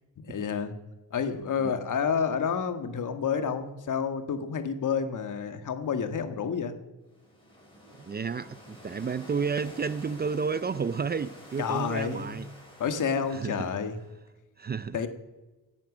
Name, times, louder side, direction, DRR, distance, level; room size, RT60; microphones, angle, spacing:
voice 1, 0.2-0.7 1.1-6.8 11.6-12.4 12.8-14.0 14.9-15.1, left 6 dB, 60° left, 1.8 m, -29 dB
voice 2, 1.6-1.9 8.0-12.5 13.3-13.7 14.6-15.0, right 5 dB, 30° right, 0.5 m, -31 dB
sound 1, 7.1-14.2, left 1 dB, 15° left, 6.3 m, -49 dB
16.5 x 10.5 x 6.2 m
cardioid pair, 90°, 35 cm